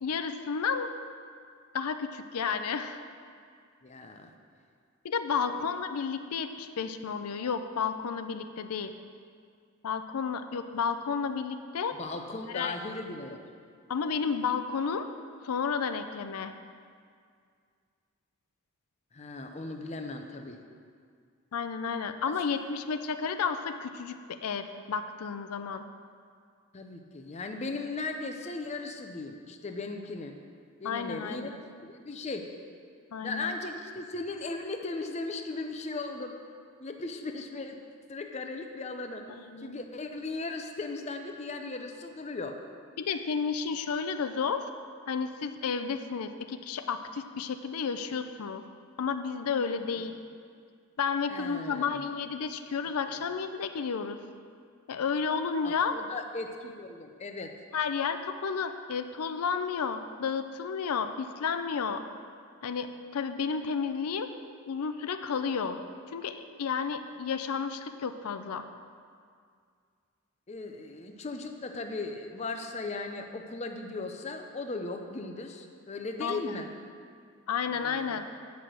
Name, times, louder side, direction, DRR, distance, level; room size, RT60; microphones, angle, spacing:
voice 1, 0.0-0.9 1.7-3.0 5.0-8.9 9.8-12.0 12.5-12.8 13.9-15.1 15.4-16.5 21.5-25.8 30.8-31.6 33.1-33.5 39.3-39.8 43.0-44.6 45.1-48.6 49.0-50.1 51.0-54.2 54.9-56.0 57.7-62.0 62.6-64.3 64.7-65.8 66.1-68.7 76.2-76.6 77.5-78.2, left 6 dB, 85° left, 9 dB, 0.5 m, -32 dB
voice 2, 3.8-4.3 12.0-13.4 19.1-20.6 26.7-30.4 30.8-31.6 31.8-32.5 33.2-36.4 36.8-37.8 38.1-39.3 39.6-42.6 51.3-52.0 53.0-53.2 55.6-57.5 70.5-76.7 77.7-78.2, left 3 dB, 30° left, 4 dB, 0.5 m, -37 dB
8.2 x 5.9 x 6.3 m, 2.2 s
head